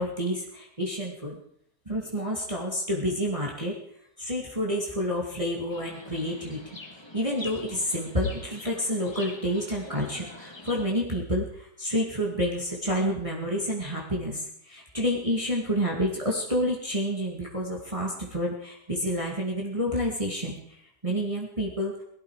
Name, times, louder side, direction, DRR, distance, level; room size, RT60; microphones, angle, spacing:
voice 1, 0.0-1.4 1.9-3.8 4.2-6.6 7.1-21.9, equal, 20° right, -3 dB, 2.3 m, -29 dB
Chirp tweet, 5.7-10.9, left 2 dB, 15° left, 1.5 m, -44 dB
18.0 x 13.0 x 4.9 m, 0.68 s
omnidirectional pair, 1.9 m